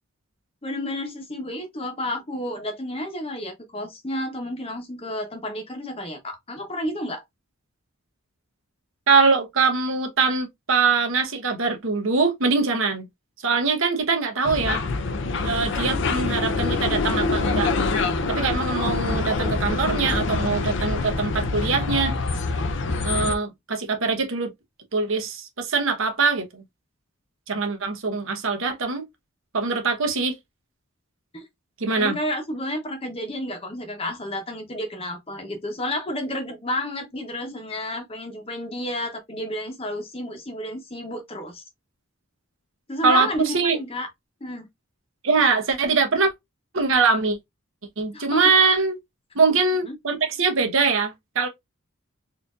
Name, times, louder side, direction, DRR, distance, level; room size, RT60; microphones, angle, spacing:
voice 1, 0.6-7.2 31.3-31.4 32.0-41.6 42.9-44.1 44.4-44.7 48.1-48.7 49.8-50.0, left 1 dB, 25° left, 0.9 m, -31 dB
voice 2, 9.1-13.0 13.4-14.8 15.4-17.7 18.3-22.2 23.0-24.5 24.9-26.6 27.5-29.1 29.5-30.4 31.8-32.2 43.0-43.8 45.2-46.3 46.7-47.4 48.0-49.0 49.3-51.5, right 4 dB, 65° right, 0.9 m, -22 dB
sound 1, 14.4-23.4, left 3 dB, 55° left, 0.5 m, -25 dB
4.2 x 2.6 x 2.4 m
head